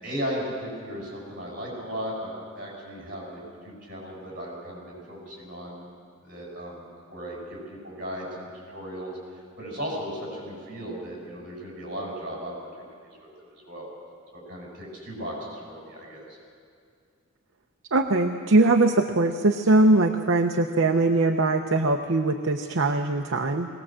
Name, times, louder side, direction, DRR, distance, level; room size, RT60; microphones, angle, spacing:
voice 1, 0.0-5.9 6.2-12.5 13.0-13.9 14.3-16.4, equal, 45° right, -2 dB, 7.2 m, -36 dB
voice 2, 17.9-23.7, right 2 dB, 70° right, 4 dB, 0.8 m, -21 dB
20.0 x 18.0 x 7.6 m, 2.2 s
head